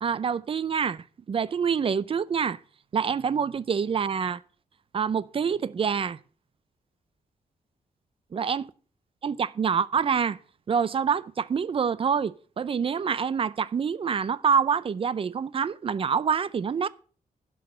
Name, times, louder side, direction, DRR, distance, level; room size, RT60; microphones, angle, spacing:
voice 1, 0.0-2.6 2.9-4.4 4.9-6.2 8.3-8.7 9.2-10.4 10.7-16.9, right 6 dB, 35° right, 0.5 m, -26 dB
11.0 x 6.3 x 7.8 m
wide cardioid pair, 160°, 15 cm